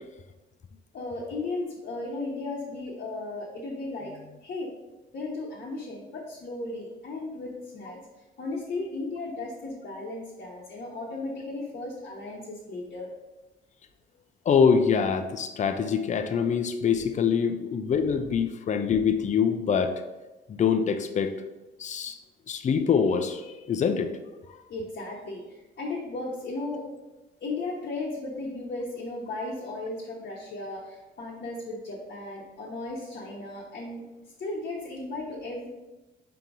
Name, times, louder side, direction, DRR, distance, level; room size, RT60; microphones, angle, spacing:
voice 1, 0.9-4.7 5.1-8.0 8.4-13.1 24.7-26.9 27.4-34.0 34.4-35.7, left 2 dB, 55° left, -4 dB, 1.0 m, -35 dB
voice 2, 14.5-20.0 20.5-21.3 21.8-22.2 22.5-24.1, left 6 dB, 35° left, 8 dB, 0.5 m, -24 dB
3.8 x 2.9 x 4.7 m, 1.1 s
cardioid pair, 90°, 20 cm